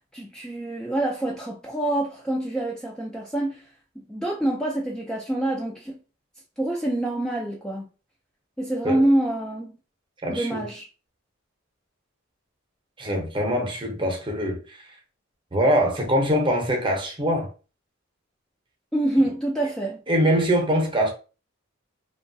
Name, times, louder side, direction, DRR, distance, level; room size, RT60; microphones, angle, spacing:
voice 1, 0.1-3.7 4.0-6.0 6.6-7.9 8.6-9.7 10.3-10.9 18.9-20.0, right 1 dB, 5° left, 0.3 m, -26 dB
voice 2, 10.2-10.6 13.0-14.8 15.5-17.5 20.1-21.1, equal, 25° right, 0.7 m, -23 dB
3.0 x 2.3 x 2.6 m
head